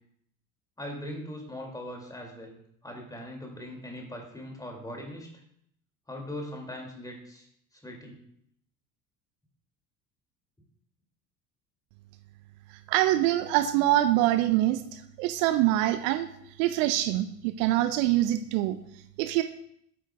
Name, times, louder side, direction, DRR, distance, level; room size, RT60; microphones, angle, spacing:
voice 1, 0.8-2.6 2.8-5.3 6.1-7.5 7.8-8.3, left 1 dB, 10° left, 0 dB, 2.6 m, -40 dB
voice 2, 12.9-16.3 16.6-18.8 19.2-19.4, right 14 dB, 55° right, 9 dB, 0.7 m, -24 dB
8.8 x 8.3 x 2.4 m, 0.71 s
figure-of-eight pair, 65°, 47 cm